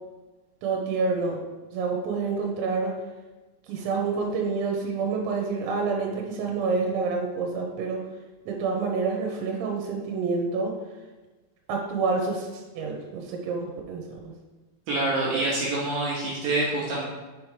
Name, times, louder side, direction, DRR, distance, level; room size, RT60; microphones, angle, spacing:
voice 1, 0.6-1.4 1.7-2.9 3.7-8.0 8.5-10.8 11.7-14.3, right 4 dB, 90° right, 0 dB, 3.0 m, -28 dB
voice 2, 14.9-17.0, right 2 dB, 70° right, -6 dB, 2.2 m, -26 dB
6.9 x 3.2 x 5.0 m, 1.2 s
omnidirectional pair, 5.3 m